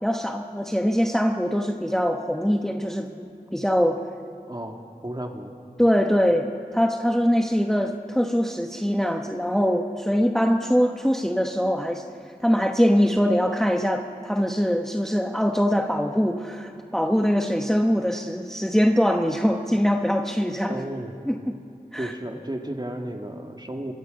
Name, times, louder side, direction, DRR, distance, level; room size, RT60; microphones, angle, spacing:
voice 1, 0.0-4.0 5.8-12.0 12.4-20.8 21.3-21.5 21.9-22.1, equal, 5° left, 3 dB, 1.1 m, -23 dB
voice 2, 4.5-5.5 20.7-21.2 22.0-23.9, right 1 dB, 30° right, 3 dB, 2.1 m, -33 dB
24.5 x 23.5 x 5.4 m, 2.6 s
wide cardioid pair, 45°, 16 cm